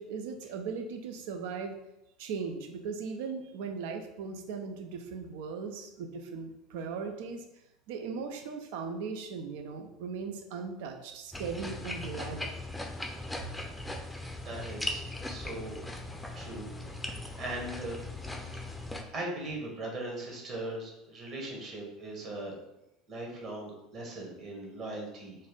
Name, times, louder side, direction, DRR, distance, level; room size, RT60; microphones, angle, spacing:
voice 1, 0.0-1.7 2.2-7.4 7.9-12.5, right 5 dB, 65° right, 5 dB, 0.5 m, -38 dB
sound 1, 11.3-19.0, left 2 dB, 5° left, 0.6 m, -39 dB
voice 2, 14.4-15.8 16.3-18.0 18.6-18.8 19.1-22.5 23.1-25.5, right 2 dB, 45° right, -1 dB, 1.4 m, -40 dB
4.1 x 2.5 x 3.8 m, 0.88 s
figure-of-eight pair, 70°, 0 cm